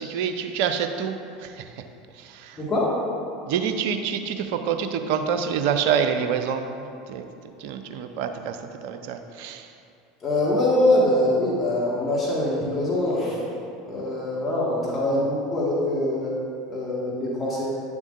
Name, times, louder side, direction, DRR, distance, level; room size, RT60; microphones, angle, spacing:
voice 1, 0.0-1.7 2.1-2.6 3.4-7.3 7.6-9.7, right 7 dB, 60° right, 7 dB, 0.5 m, -27 dB
voice 2, 2.6-2.9 10.2-13.4 13.9-16.3 16.7-17.7, left 1 dB, 25° left, -6 dB, 1.8 m, -23 dB
9.9 x 7.1 x 2.6 m, 2.5 s
figure-of-eight pair, 75°, 0 cm